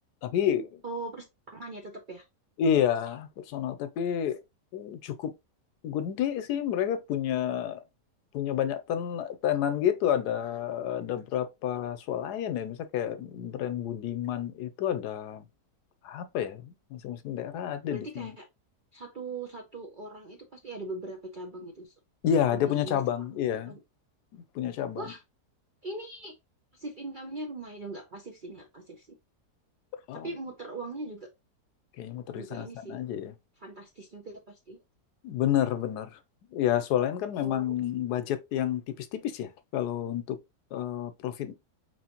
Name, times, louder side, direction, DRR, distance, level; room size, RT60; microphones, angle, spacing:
voice 1, 0.2-0.8 2.6-4.4 4.7-5.3 5.8-7.8 8.3-15.4 16.0-18.3 22.2-23.8 24.3-25.1 30.1-30.3 32.0-33.3 35.2-36.2 36.5-40.4 40.7-41.5, left 9 dB, 80° left, 1.2 m, -30 dB
voice 2, 0.8-1.2 1.5-2.2 17.9-18.5 18.9-21.9 22.5-23.2 23.7-23.8 25.0-25.2 25.8-26.3 26.7-29.2 30.1-31.3 32.3-33.0 33.6-34.8 37.4-37.6 38.3-38.7, right 2 dB, 55° right, 0.5 m, -40 dB
4.7 x 3.1 x 2.9 m
omnidirectional pair, 1.7 m